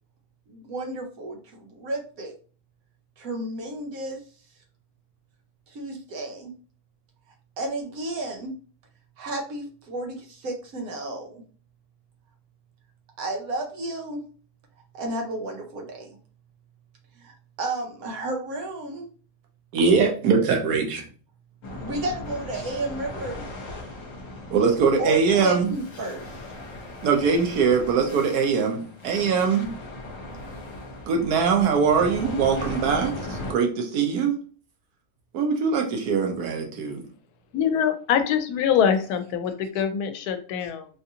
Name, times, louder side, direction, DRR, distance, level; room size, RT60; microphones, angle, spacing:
voice 1, 0.5-2.3 3.2-4.2 5.7-6.5 7.6-8.5 9.2-11.4 13.2-14.2 14.9-16.1 17.1-19.1 21.8-23.9 25.0-26.5 40.6-40.7, right 2 dB, 70° right, 2 dB, 1.2 m, -32 dB
voice 2, 19.7-21.0 24.5-25.7 27.0-29.7 31.1-34.4 35.3-37.0, right 5 dB, 90° right, 3 dB, 1.3 m, -22 dB
sound 1, 21.6-33.5, left 1 dB, 60° left, 1.3 m, -38 dB
voice 3, 37.5-40.9, left 8 dB, 90° left, 8 dB, 1.1 m, -24 dB
3.8 x 2.5 x 2.7 m, 0.39 s
omnidirectional pair, 1.6 m